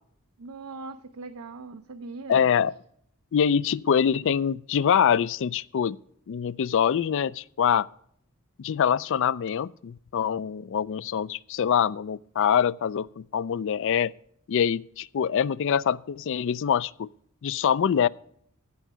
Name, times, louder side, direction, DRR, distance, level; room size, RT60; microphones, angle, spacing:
voice 1, 0.4-2.5, right 3 dB, 85° right, 0.6 m, -40 dB
voice 2, 2.3-2.7 3.3-6.0 6.3-7.9 8.6-14.1 14.5-17.1 17.4-18.1, left 8 dB, 60° left, 0.4 m, -24 dB
15.0 x 5.5 x 6.1 m
head